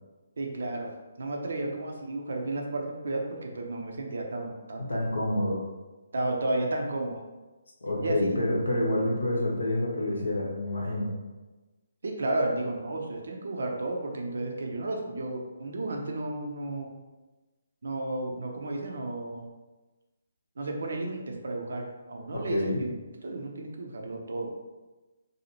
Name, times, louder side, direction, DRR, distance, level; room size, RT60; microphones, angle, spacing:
voice 1, 0.4-0.9 1.2-5.2 6.1-7.2 8.0-8.2 12.0-16.9 17.8-19.5 20.6-22.9 23.2-24.5, right 2 dB, 60° right, 1 dB, 0.5 m, -32 dB
voice 2, 4.9-5.6 7.8-11.1 22.3-22.8, left 1 dB, 70° left, -2 dB, 0.7 m, -28 dB
2.7 x 2.4 x 2.9 m, 1.2 s
figure-of-eight pair, 140°, 0 cm